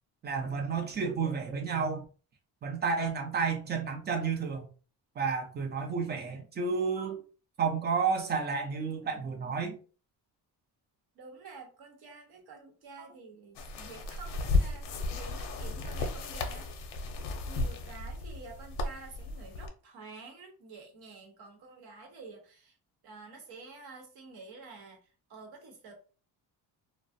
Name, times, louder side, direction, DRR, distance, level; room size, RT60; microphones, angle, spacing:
voice 1, 0.2-2.0 2.6-4.7 5.2-7.2 7.6-9.8 13.0-13.1, right 5 dB, 25° right, 0.4 m, -31 dB
voice 2, 11.1-16.7 17.5-22.8 23.0-25.9, right 4 dB, 65° right, 0.9 m, -49 dB
sound 1, 13.6-19.7, left 3 dB, 80° left, 0.6 m, -34 dB
2.4 x 2.1 x 2.5 m
cardioid pair, 160°, 42 cm